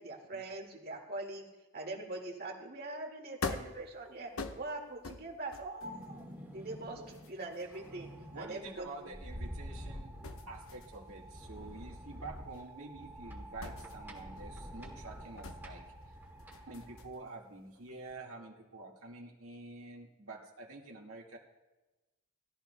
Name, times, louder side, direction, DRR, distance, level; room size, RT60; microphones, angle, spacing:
voice 1, 0.0-1.5 1.7-4.3 4.6-6.2 6.5-8.1 8.4-9.1, right 2 dB, 45° right, 1 dB, 2.0 m, -42 dB
sound 1, 3.4-9.9 10.2-17.4 17.7-18.1, left 3 dB, 75° left, 0.9 m, -46 dB
sound 2, 5.8-17.1, equal, 10° right, 1.9 m, -48 dB
voice 2, 8.3-10.2 10.5-15.8 16.7-21.4, right 2 dB, 80° right, 0 dB, 1.8 m, -48 dB
20.0 x 13.5 x 2.2 m, 1.1 s
head